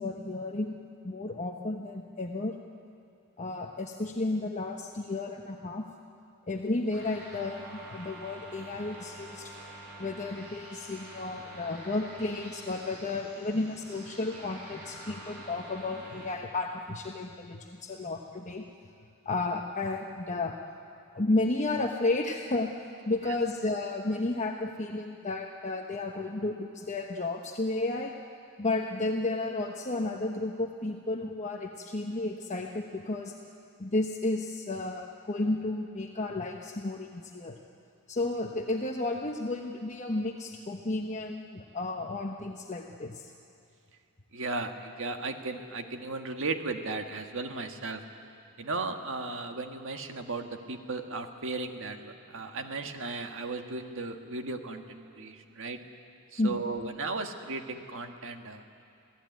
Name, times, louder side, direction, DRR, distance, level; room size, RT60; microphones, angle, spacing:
voice 1, 0.0-2.6 3.4-5.8 6.5-9.5 10.0-18.7 19.2-20.5 21.1-22.7 23.1-28.2 28.6-33.3 33.8-37.6 38.1-43.3 56.4-56.5, left 2 dB, 35° left, 2 dB, 1.0 m, -32 dB
sound 1, 6.9-16.3, right 1 dB, 85° right, 7.9 m, -47 dB
voice 2, 44.3-48.0 48.6-55.8 56.3-58.8, right 3 dB, 60° right, 5 dB, 1.7 m, -36 dB
26.5 x 17.0 x 9.4 m, 2.5 s
head